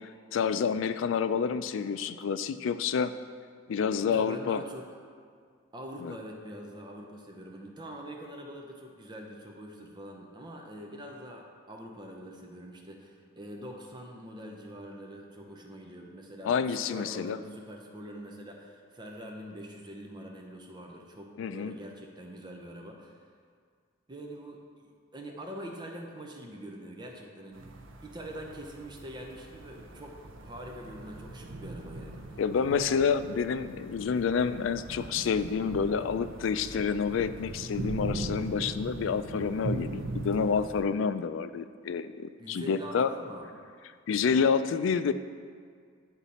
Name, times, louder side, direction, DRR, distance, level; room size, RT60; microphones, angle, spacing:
voice 1, 0.3-3.1 3.7-4.6 6.0-6.1 16.4-17.4 21.4-21.7 32.4-43.1 44.1-45.1, left 6 dB, 75° left, 12 dB, 0.3 m, -28 dB
voice 2, 4.1-4.9 5.7-23.2 24.1-27.7 28.0-32.2 42.4-43.5, equal, 25° right, 1 dB, 0.7 m, -44 dB
sound 1, 27.5-40.8, right 2 dB, 75° right, 0.6 m, -40 dB
10.0 x 4.0 x 4.2 m, 2.1 s
head